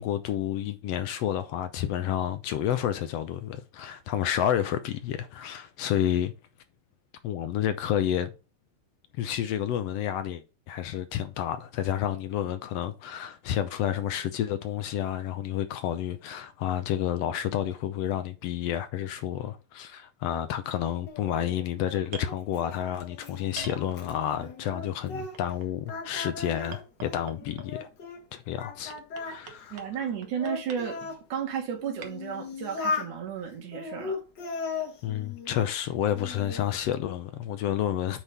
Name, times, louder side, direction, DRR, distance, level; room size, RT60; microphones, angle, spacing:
voice 1, 0.0-6.3 7.2-8.3 9.2-27.9 28.3-28.9 29.2-29.8 35.0-38.2, left 10 dB, 75° left, 1.6 m, -30 dB
Singing, 21.1-25.6 25.9-28.2 28.6-31.2 31.8-33.1 33.7-35.7 36.1-36.7, left 4 dB, 50° left, 1.5 m, -37 dB
sound 1, 22.0-22.3 23.5-24.3 25.3-26.2 26.7-27.8 28.9-29.9 30.2-30.8 32.0-32.1, right 6 dB, 55° right, 1.3 m, -42 dB
voice 2, 29.7-31.0 31.3-34.2, right 8 dB, 85° right, 3.2 m, -33 dB
8.2 x 3.6 x 5.7 m
omnidirectional pair, 3.4 m